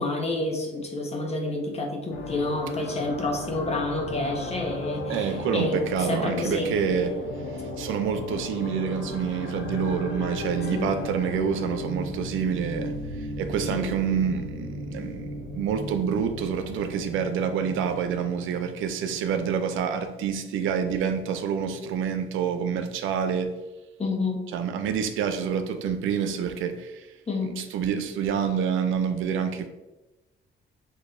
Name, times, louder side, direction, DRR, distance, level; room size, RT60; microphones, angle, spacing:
voice 1, 0.0-5.8 6.1-6.8 10.7-10.9 13.7-13.9 24.0-24.5 27.3-27.6, left 2 dB, 30° left, 1.0 m, -29 dB
sound 1, 2.1-18.6, left 2 dB, 90° left, 0.6 m, -35 dB
voice 2, 5.1-7.2 7.8-15.3 15.6-23.5 24.5-27.1 27.4-29.7, right 7 dB, 85° right, 0.5 m, -27 dB
6.4 x 2.6 x 2.6 m
cardioid pair, 90°, 20 cm